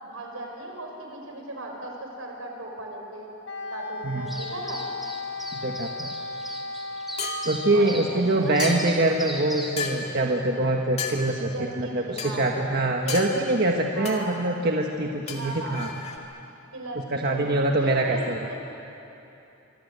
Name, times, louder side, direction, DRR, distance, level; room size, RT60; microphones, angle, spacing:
voice 1, 0.0-3.3 3.7-4.8 7.6-8.0 8.3-8.6 11.4-12.5 13.1-14.4 15.3-15.8 16.7-17.4 17.7-18.2 18.5-18.6, right 1 dB, 85° right, 1 dB, 5.6 m, -37 dB
Wind instrument woodwind instrument, 3.4-8.3, left 3 dB, 60° left, 1.3 m, -36 dB
sound 1, 4.3-9.7, equal, ahead, 3.2 m, -39 dB
voice 2, 5.5-6.1 7.4-11.5 11.8-15.9 17.1-18.5, right 2 dB, 50° right, 1 dB, 1.5 m, -24 dB
sound 2, 7.2-7.5 8.6-9.0 9.8-10.1 11.0-11.2 12.2-12.3 13.1-13.3 14.1-14.2 15.3-16.2, left 5 dB, 30° left, 2.5 m, -32 dB
25.5 x 24.5 x 8.2 m, 2.9 s
head